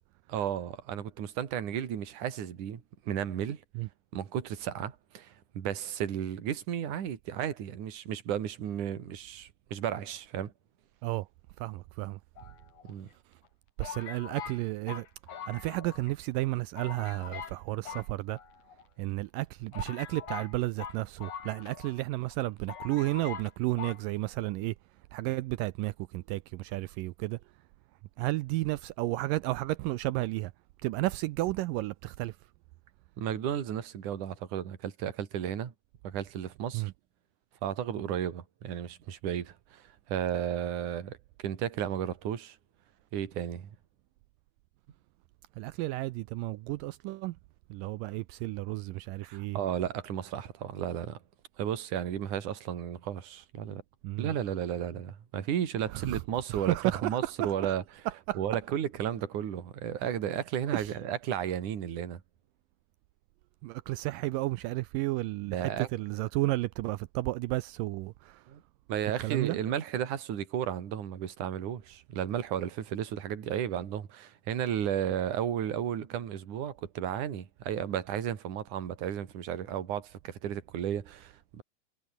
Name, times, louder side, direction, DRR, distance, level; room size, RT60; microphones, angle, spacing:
voice 1, 0.3-3.6 4.1-10.5 12.8-13.1 33.2-35.7 36.0-36.9 37.6-42.6 43.1-43.7 49.2-51.2 51.6-53.8 54.2-57.8 58.4-62.2 65.5-65.9 68.5-68.6 68.9-81.6, right 9 dB, 55° right, 3.6 m, -33 dB
voice 2, 11.6-12.2 13.8-15.1 15.5-18.4 19.0-24.7 25.1-27.4 28.2-30.5 30.8-32.4 36.7-36.9 45.6-47.4 47.7-49.6 54.0-54.3 55.9-56.2 56.5-57.5 58.1-58.4 60.7-60.9 63.6-68.4 69.2-69.6, right 18 dB, 80° right, 2.0 m, -32 dB
sound 1, 12.4-13.1 13.8-16.1 16.4-16.5 16.8-17.6 17.8-18.8 19.4-19.5 19.7-22.0 22.3-22.4 22.7-23.5 23.8-24.0, left 8 dB, 55° left, 3.7 m, -43 dB
omnidirectional pair, 4.4 m